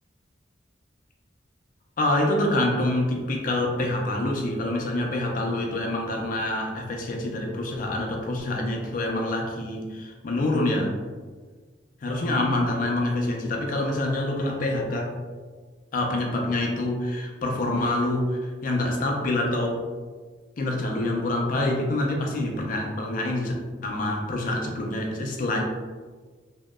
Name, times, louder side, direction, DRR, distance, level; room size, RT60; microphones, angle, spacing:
voice 1, 2.0-10.9 12.0-15.1 15.9-19.8 20.6-23.5 23.8-25.6, left 1 dB, 45° left, 1 dB, 0.4 m, -26 dB
2.7 x 2.0 x 2.2 m, 1.4 s
head